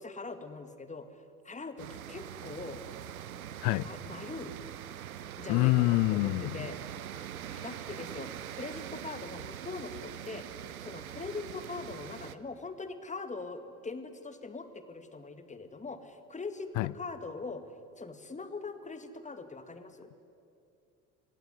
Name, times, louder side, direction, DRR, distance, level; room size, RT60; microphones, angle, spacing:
voice 1, 0.0-2.8 3.8-4.6 5.4-6.8 7.6-10.5 10.8-17.6 18.0-20.1, left 3 dB, 15° left, 2.1 m, -42 dB
sound 1, 1.8-12.4, right 10 dB, 80° right, 0.9 m, -43 dB
voice 2, 5.5-6.7 16.8-16.9, left 20 dB, 45° left, 0.6 m, -26 dB
29.5 x 17.5 x 9.7 m
figure-of-eight pair, 65°, 42 cm